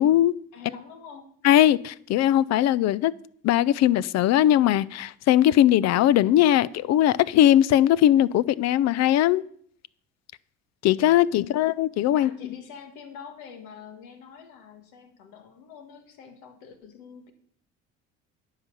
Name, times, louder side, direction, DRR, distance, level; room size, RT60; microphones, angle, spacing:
voice 1, 0.0-0.4 1.4-3.1 3.4-9.4 10.8-12.3, left 12 dB, 60° left, 0.5 m, -20 dB
voice 2, 0.5-1.3 11.3-11.6 12.1-17.3, left 6 dB, 85° left, 1.6 m, -45 dB
10.0 x 5.6 x 7.3 m
supercardioid pair, 80°, 30 cm